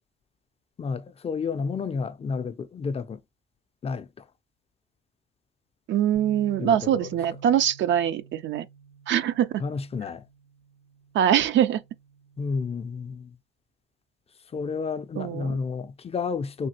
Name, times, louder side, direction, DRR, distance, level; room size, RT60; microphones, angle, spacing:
voice 1, 0.8-3.2 3.8-4.1 6.6-7.1 9.6-10.2 12.4-13.3 14.5-16.7, left 5 dB, 30° left, 0.4 m, -31 dB
voice 2, 5.9-8.7 9.1-9.6 11.1-11.8 15.2-15.5, right 10 dB, 70° right, 0.4 m, -23 dB
sound 1, 6.1-12.4, right 6 dB, 90° right, 1.2 m, -48 dB
3.2 x 2.3 x 2.8 m
cardioid pair, 90°, 20 cm